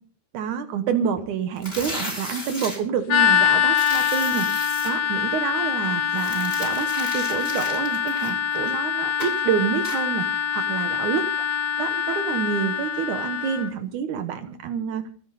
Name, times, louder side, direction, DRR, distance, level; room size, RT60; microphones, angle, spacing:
voice 1, 0.3-11.2 11.8-15.1, right 7 dB, 90° right, 8 dB, 1.7 m, -28 dB
sound 1, 1.6-2.8 3.7-4.9 6.1-8.8 9.2-9.4 9.8-10.0, left 1 dB, 10° left, 5.8 m, -35 dB
sound 2, 3.1-13.7, left 8 dB, 70° left, 1.5 m, -24 dB
26.0 x 9.5 x 4.1 m, 0.43 s
omnidirectional pair, 5.4 m